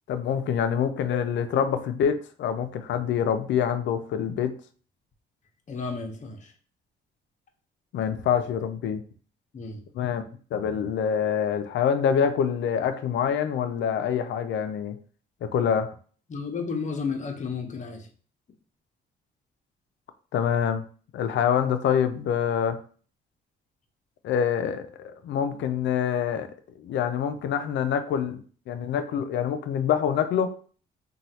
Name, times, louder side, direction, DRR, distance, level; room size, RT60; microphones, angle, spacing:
voice 1, 0.1-4.5 7.9-9.0 9.9-10.2 10.5-15.0 15.4-15.9 20.3-20.8 21.1-22.8 24.2-26.5 26.8-28.4 28.7-30.5, left 8 dB, 70° left, 0.4 m, -26 dB
voice 2, 5.7-6.5 9.5-9.8 16.3-18.1, left 5 dB, 40° left, 0.7 m, -32 dB
3.0 x 2.3 x 2.7 m
cardioid pair, 90°, 20 cm